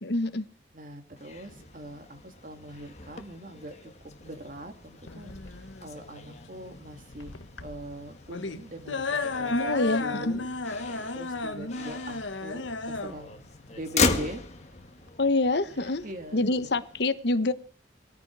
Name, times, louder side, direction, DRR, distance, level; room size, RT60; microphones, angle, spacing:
voice 1, 0.0-0.4 9.5-10.3 15.2-16.0 16.3-17.5, left 2 dB, 60° left, 1.0 m, -26 dB
voice 2, 0.7-3.9 4.2-9.6 10.0-10.5 10.8-13.4 13.7-14.4 15.7-16.7, right 1 dB, 45° right, 2.7 m, -42 dB
Motor vehicle (road), 1.2-17.0, left 4 dB, 35° left, 1.8 m, -37 dB
sound 1, 5.1-15.1, left 3 dB, 85° left, 1.4 m, -34 dB
20.5 x 14.5 x 4.7 m
head